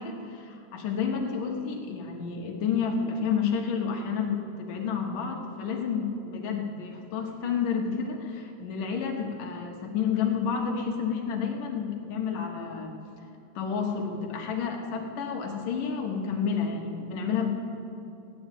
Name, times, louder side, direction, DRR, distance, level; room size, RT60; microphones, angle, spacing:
voice 1, 0.0-12.9 13.6-17.5, left 6 dB, 65° left, 1 dB, 2.5 m, -30 dB
14.5 x 10.0 x 9.2 m, 2.7 s
omnidirectional pair, 4.9 m